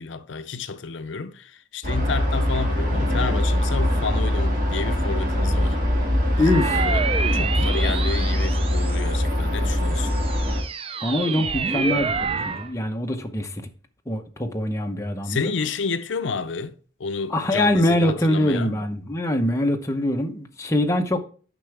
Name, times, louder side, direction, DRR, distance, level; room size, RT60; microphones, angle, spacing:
voice 1, 0.0-5.8 6.4-7.1 7.3-10.1 15.2-16.7 17.0-18.7, left 5 dB, 70° left, 0.5 m, -30 dB
sound 1, 1.8-10.6, left 1 dB, 45° right, 2.0 m, -22 dB
sound 2, 6.3-9.3 9.8-12.7, right 5 dB, 30° right, 0.4 m, -28 dB
voice 2, 6.4-6.9 7.8-7.9 11.0-13.7 14.1-15.5 17.3-21.2, left 1 dB, 15° left, 0.8 m, -23 dB
9.9 x 5.8 x 3.3 m
head